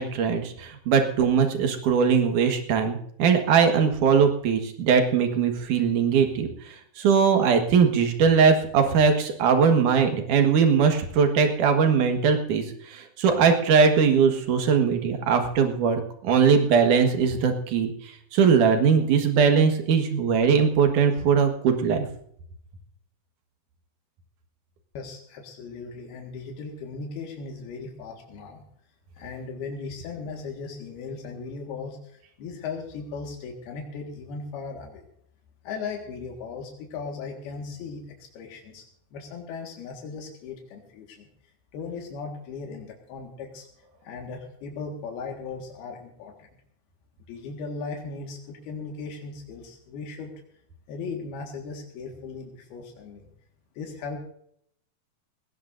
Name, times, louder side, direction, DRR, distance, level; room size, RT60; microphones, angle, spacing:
voice 1, 0.0-6.5 7.0-17.9 18.3-22.1, right 6 dB, 60° right, 5 dB, 2.8 m, -20 dB
voice 2, 25.0-28.6 29.2-35.1 35.6-38.9 39.1-41.3 41.7-43.7 44.0-46.5 47.3-50.3 50.9-53.3 53.8-54.2, left 4 dB, 85° left, 1 dB, 3.7 m, -37 dB
19.5 x 17.5 x 2.6 m, 0.68 s
omnidirectional pair, 4.4 m